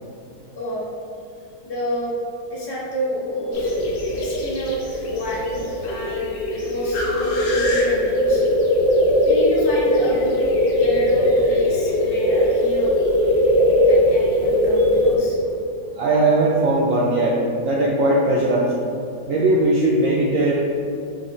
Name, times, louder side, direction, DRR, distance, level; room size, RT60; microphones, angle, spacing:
voice 1, 1.6-2.2 2.5-3.8 4.1-8.4 9.2-12.9 13.9-15.4, left 1 dB, 25° left, -6 dB, 0.5 m, -29 dB
sound 1, 3.5-15.2, left 1 dB, 65° left, 1.1 m, -19 dB
voice 2, 15.9-18.7 19.3-20.5, right 2 dB, 80° right, -4 dB, 0.7 m, -19 dB
3.9 x 3.0 x 4.2 m, 2.6 s
omnidirectional pair, 1.9 m